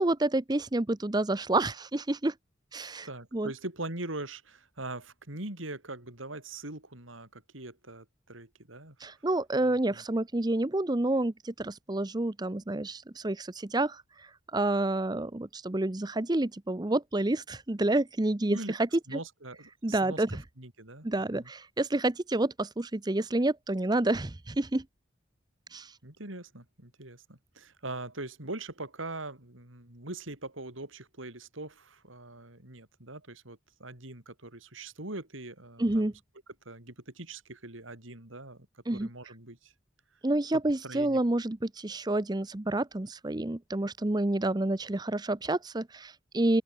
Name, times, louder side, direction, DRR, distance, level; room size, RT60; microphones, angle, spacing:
voice 1, 0.0-2.3 2.7-3.1 3.3-3.5 9.0-19.2 19.8-20.4 21.0-24.8 25.7-25.9 35.8-36.1 38.9-39.1 40.2-46.6, right 2 dB, 20° right, 0.7 m, -29 dB
voice 2, 3.0-9.0 9.6-10.0 18.5-18.7 19.1-20.2 20.6-21.5 26.0-36.1 36.7-38.7 38.9-39.7 40.8-41.2, right 2 dB, 90° right, 5.3 m, -42 dB
open air
head